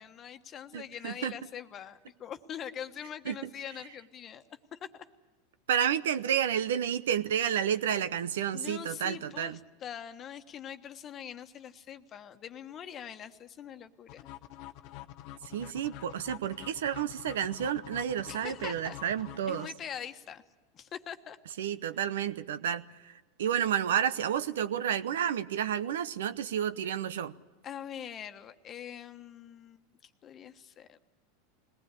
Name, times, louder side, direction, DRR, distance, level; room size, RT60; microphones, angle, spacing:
voice 1, 0.0-4.4 4.7-5.0 8.5-14.3 18.3-19.0 19.5-20.4 20.7-21.4 27.6-31.0, left 9 dB, 35° left, 8 dB, 1.3 m, -43 dB
voice 2, 0.7-1.3 3.3-3.5 5.7-9.6 15.5-19.7 21.6-23.1 23.4-27.3, right 9 dB, 75° right, 14 dB, 0.8 m, -31 dB
sound 1, 14.1-20.0, left 14 dB, 55° left, 0.8 m, -47 dB
21.0 x 18.5 x 8.4 m, 1.3 s
hypercardioid pair, 95°, 0 cm